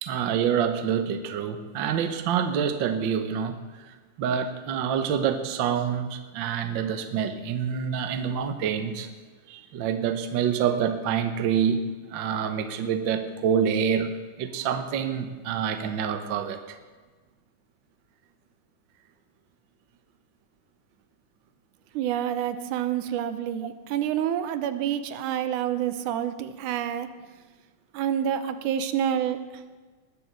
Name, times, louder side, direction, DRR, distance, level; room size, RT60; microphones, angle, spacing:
voice 1, 0.0-3.6 3.8-3.9 4.2-9.1 9.5-11.8 12.1-14.1 14.4-16.8, right 8 dB, 65° right, 8 dB, 1.1 m, -27 dB
voice 2, 22.0-27.1 27.9-29.4, right 10 dB, 85° right, 11 dB, 2.3 m, -28 dB
20.0 x 7.8 x 6.6 m, 1.3 s
omnidirectional pair, 3.5 m